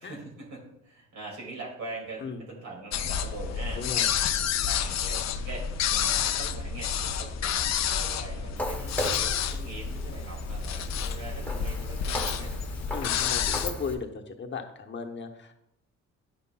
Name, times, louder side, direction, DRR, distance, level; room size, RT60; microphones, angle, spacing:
voice 1, 0.0-3.8 4.6-9.0 9.5-12.5, right 3 dB, 65° right, -3 dB, 2.3 m, -42 dB
sound 1, 2.9-13.7, left 8 dB, 65° left, 0.5 m, -29 dB
voice 2, 3.8-4.1 12.9-15.5, left 5 dB, 40° left, 4 dB, 1.0 m, -36 dB
sound 2, 6.5-13.9, right 3 dB, 20° right, 0.4 m, -43 dB
Walk footsteps, 8.6-13.9, left 1 dB, 5° left, 1.0 m, -37 dB
10.0 x 5.6 x 2.2 m, 0.79 s
cardioid pair, 90°, 30 cm